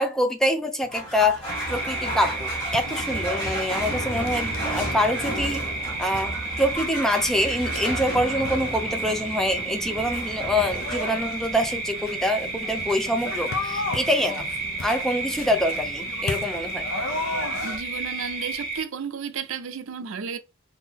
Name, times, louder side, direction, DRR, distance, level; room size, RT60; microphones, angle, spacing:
voice 1, 0.0-1.4 1.7-5.7 6.0-14.4 14.8-16.8, left 1 dB, ahead, 0.5 m, -25 dB
sound 1, 0.8-17.8, left 3 dB, 70° left, 0.6 m, -37 dB
sound 2, 0.9-17.6, right 1 dB, 25° left, 1.7 m, -35 dB
sound 3, 1.5-18.8, right 3 dB, 40° right, 1.3 m, -32 dB
voice 2, 17.6-20.4, right 6 dB, 70° right, 0.5 m, -33 dB
3.6 x 2.7 x 2.8 m
head